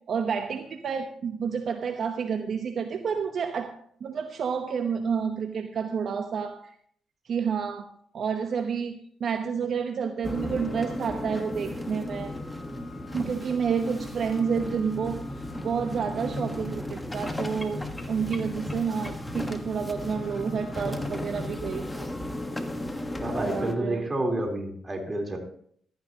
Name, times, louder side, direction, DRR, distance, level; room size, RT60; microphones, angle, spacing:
voice 1, 0.1-3.7 4.0-6.7 7.2-7.9 8.1-12.3 13.1-15.2 15.6-22.1 23.3-24.1, right 6 dB, 55° right, 5 dB, 1.0 m, -29 dB
sound 1, 10.2-23.7, left 1 dB, 10° left, 1.4 m, -35 dB
voice 2, 23.2-25.4, right 1 dB, 25° right, 2 dB, 3.8 m, -29 dB
15.0 x 13.0 x 3.0 m, 0.62 s
cardioid pair, 90°, 0 cm